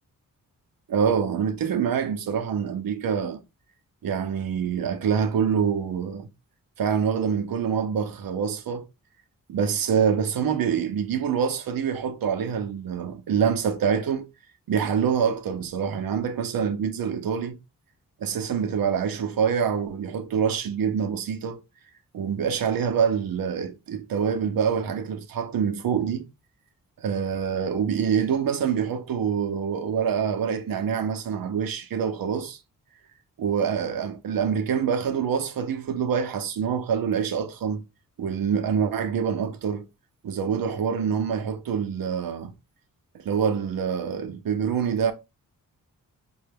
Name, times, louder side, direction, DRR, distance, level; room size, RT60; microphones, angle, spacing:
voice 1, 0.9-3.4 4.0-6.3 6.8-8.8 9.5-14.3 14.7-17.6 18.2-21.6 22.1-26.3 27.0-32.6 33.4-37.8 38.2-39.9 40.2-42.5 43.2-45.1, right 7 dB, 85° right, 0.7 m, -26 dB
5.4 x 2.2 x 3.4 m
wide cardioid pair, 125°, 34 cm